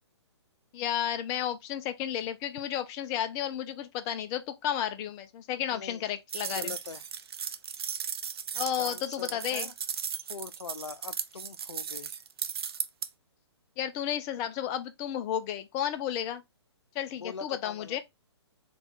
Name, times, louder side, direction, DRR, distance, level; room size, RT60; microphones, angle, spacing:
voice 1, 0.7-6.7 8.5-9.7 13.8-16.4 16.9-18.0, left 10 dB, 20° left, 0.5 m, -32 dB
voice 2, 5.7-6.1 6.5-7.0 8.6-9.7 10.3-12.2 17.1-18.0, left 6 dB, 75° left, 0.5 m, -42 dB
sound 1, 6.3-13.1, right 7 dB, 60° right, 0.5 m, -36 dB
4.2 x 2.4 x 3.7 m
figure-of-eight pair, 125°, 15 cm